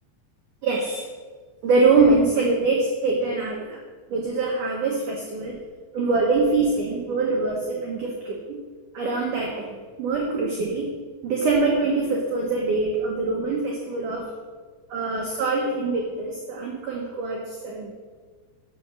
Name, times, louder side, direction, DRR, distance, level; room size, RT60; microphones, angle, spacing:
voice 1, 0.6-1.0 1.6-3.8 4.1-5.6 5.9-8.6 8.9-10.9 11.2-14.3 14.9-17.9, right 3 dB, 80° right, -1 dB, 1.8 m, -24 dB
11.5 x 6.8 x 6.2 m, 1.5 s
omnidirectional pair, 5.4 m